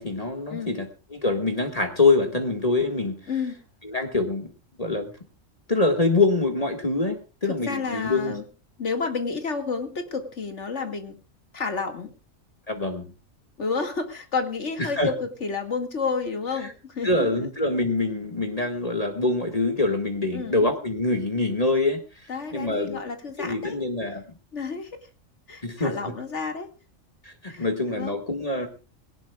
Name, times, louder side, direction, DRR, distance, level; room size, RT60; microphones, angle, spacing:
voice 1, 0.0-3.2 3.8-4.5 4.8-5.1 5.7-8.3 12.7-13.1 14.8-15.1 17.0-23.0 23.4-24.2 25.6-25.9 27.2-28.7, left 2 dB, 30° left, 4 dB, 1.8 m, -25 dB
voice 2, 3.3-3.6 7.4-8.4 8.8-11.2 11.5-12.1 13.6-17.5 20.3-20.7 22.3-23.8 24.5-25.1 25.5-26.7 27.5-28.1, left 4 dB, 65° left, 5 dB, 2.4 m, -30 dB
20.5 x 18.0 x 2.4 m, 0.31 s
omnidirectional pair, 1.3 m